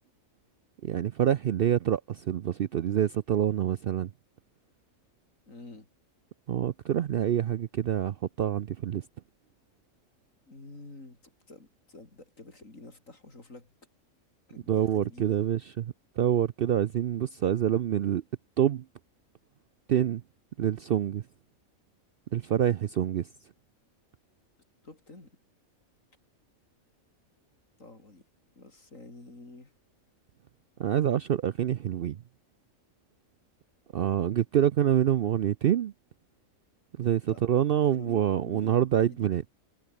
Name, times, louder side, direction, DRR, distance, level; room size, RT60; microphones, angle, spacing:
voice 1, 0.8-4.1 6.5-9.0 14.7-18.2 18.6-18.8 19.9-20.2 20.6-21.2 22.3-23.3 30.8-32.2 33.9-35.9 37.0-39.4, right 10 dB, 60° right, 0.6 m, -26 dB
voice 2, 5.5-5.9 10.5-13.7 14.5-15.5 24.8-25.3 27.8-28.3 28.6-29.7 37.3-37.4 37.8-39.3, left 2 dB, 70° left, 5.5 m, -49 dB
omnidirectional pair, 1.4 m